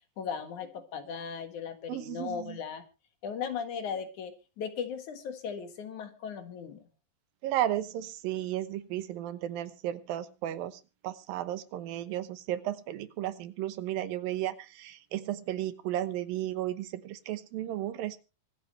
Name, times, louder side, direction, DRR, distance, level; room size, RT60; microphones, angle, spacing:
voice 1, 0.2-2.8 3.2-6.8, left 7 dB, 60° left, 8 dB, 2.9 m, -37 dB
voice 2, 1.9-2.6 7.4-18.2, right 13 dB, 80° right, 13 dB, 2.8 m, -34 dB
24.5 x 8.6 x 3.2 m, 0.31 s
omnidirectional pair, 4.1 m